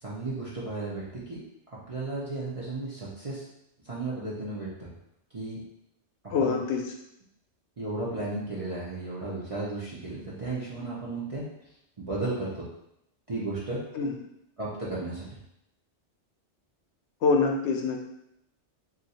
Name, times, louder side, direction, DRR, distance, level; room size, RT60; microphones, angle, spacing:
voice 1, 0.0-1.4 1.7-3.5 3.8-4.9 5.3-5.6 6.4-6.6 7.8-11.4 12.0-12.6 13.3-13.8 14.6-15.4, right 2 dB, 40° right, -7 dB, 0.5 m, -34 dB
voice 2, 6.3-6.9 13.9-14.1 17.2-18.0, left 4 dB, 75° left, 2 dB, 0.9 m, -25 dB
2.5 x 2.4 x 4.1 m, 0.80 s
omnidirectional pair, 1.2 m